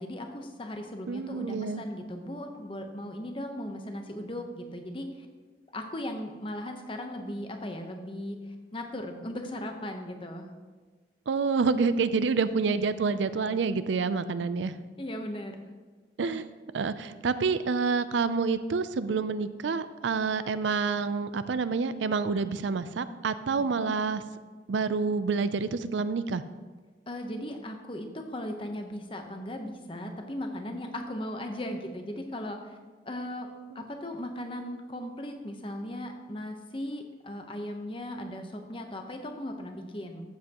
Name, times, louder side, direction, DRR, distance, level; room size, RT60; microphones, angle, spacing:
voice 1, 0.0-5.3 5.7-8.4 8.7-10.5 15.0-15.7 23.6-23.9 27.1-32.8 33.1-33.5 33.7-40.3, left 1 dB, 30° left, 4 dB, 0.9 m, -37 dB
voice 2, 1.1-1.8 11.3-14.8 16.2-16.5 16.7-24.2 24.7-26.4 33.7-33.8, right 4 dB, 85° right, 13 dB, 0.4 m, -28 dB
13.5 x 7.6 x 3.0 m, 1.4 s
head